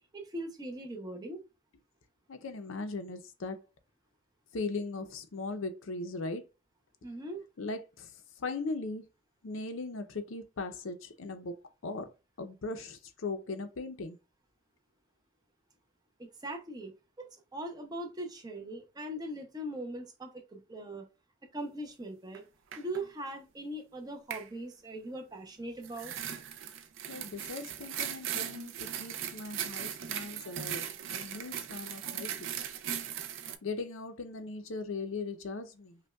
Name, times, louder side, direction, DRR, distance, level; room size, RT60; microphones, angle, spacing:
voice 1, 0.1-1.4 7.0-7.4 16.2-16.9 17.2-21.1 21.5-22.4 22.8-26.1, right 1 dB, 20° right, 0.6 m, -40 dB
voice 2, 2.3-3.6 4.5-6.5 7.6-8.1 8.4-9.1 9.4-12.1 12.4-14.2 27.1-32.5 33.6-36.0, left 3 dB, 65° left, 0.5 m, -39 dB
sound 1, 22.3-22.4 22.7-23.0 24.3-24.5 25.8-33.6, right 9 dB, 60° right, 0.4 m, -38 dB
5.1 x 2.2 x 2.3 m
head